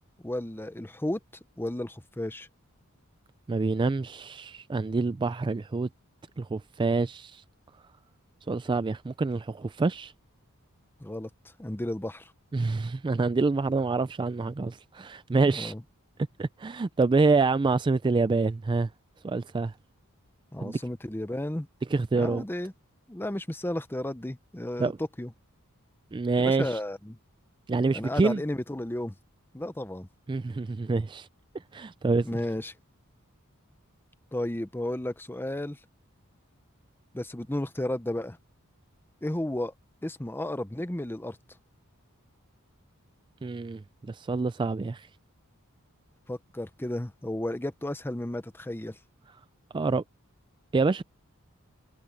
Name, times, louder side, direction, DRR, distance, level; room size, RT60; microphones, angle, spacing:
voice 1, 0.2-1.2 1.6-2.5 11.0-11.3 11.6-12.3 15.5-15.8 20.5-21.7 22.1-22.7 23.1-24.9 25.2-25.3 26.4-27.2 27.9-29.1 29.5-30.1 32.2-32.7 34.3-35.8 37.1-38.4 39.2-39.7 40.0-41.4 46.3-49.0, left 1 dB, 10° left, 0.8 m, -33 dB
voice 2, 3.5-5.9 6.4-7.4 8.5-10.1 12.5-15.7 16.4-18.9 19.2-19.7 20.6-20.8 21.9-22.4 24.8-25.0 26.1-26.8 27.7-28.4 30.3-31.3 31.7-32.3 43.4-45.1 49.7-50.0 50.7-51.0, right 3 dB, 20° right, 0.3 m, -26 dB
head